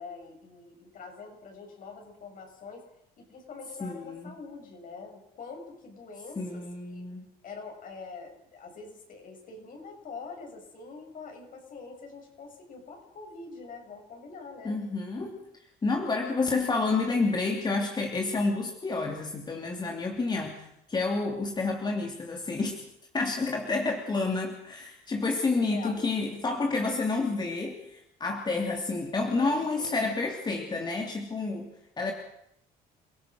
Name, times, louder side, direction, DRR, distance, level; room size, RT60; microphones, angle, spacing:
voice 1, 0.0-2.8 3.2-7.0 7.4-14.8 25.5-26.1 29.4-30.1, left 4 dB, 55° left, 2 dB, 7.6 m, -44 dB
voice 2, 3.8-4.3 6.4-7.3 14.6-15.4 15.8-22.8 23.1-32.1, left 3 dB, 25° left, 2 dB, 3.0 m, -29 dB
29.5 x 17.0 x 6.4 m, 0.78 s
cardioid pair, 110°, 17 cm